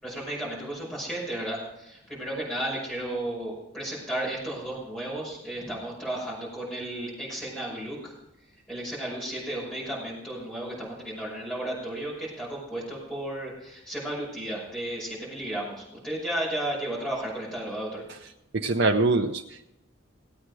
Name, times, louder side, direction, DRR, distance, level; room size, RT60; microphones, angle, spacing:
voice 1, 0.0-8.1 8.7-18.0, right 1 dB, 5° left, -5 dB, 5.7 m, -33 dB
voice 2, 18.5-19.7, right 3 dB, 55° right, 2 dB, 0.6 m, -24 dB
17.5 x 8.7 x 4.8 m, 0.93 s
head